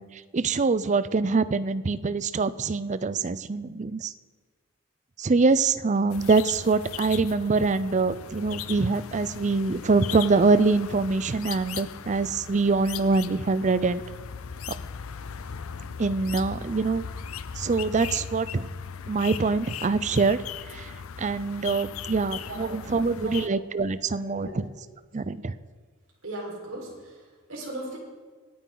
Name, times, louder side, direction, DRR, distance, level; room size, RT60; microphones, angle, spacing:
voice 1, 0.0-4.1 5.2-14.0 16.0-17.0 17.6-18.7 19.1-20.4 20.7-20.9 21.2-24.7 25.1-25.5, right 3 dB, 35° right, 15 dB, 0.5 m, -24 dB
sound 1, 6.1-23.5, left 7 dB, 85° left, 0.6 m, -38 dB
voice 2, 22.4-23.5 24.1-24.6 26.2-28.0, right 1 dB, 75° right, -3 dB, 4.7 m, -39 dB
26.0 x 9.1 x 3.9 m, 1.5 s
head